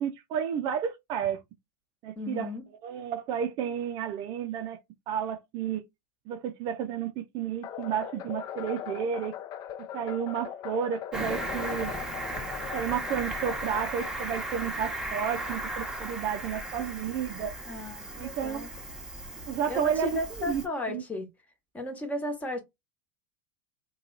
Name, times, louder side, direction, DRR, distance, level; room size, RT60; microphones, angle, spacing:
voice 1, 0.0-1.4 2.0-2.5 2.8-4.8 5.1-5.8 6.3-9.3 9.8-11.9 12.7-17.5 18.2-18.7 19.5-20.2 20.4-21.0, right 8 dB, 50° right, 0.5 m, -31 dB
voice 2, 2.2-2.6 17.6-18.7 19.7-21.3 21.7-22.6, left 1 dB, 15° left, 1.2 m, -34 dB
sound 1, 7.6-15.9, left 10 dB, 45° left, 0.5 m, -41 dB
Cricket, 11.1-20.7, right 1 dB, 5° right, 1.0 m, -36 dB
2.9 x 2.3 x 3.9 m
hypercardioid pair, 105°, 10 cm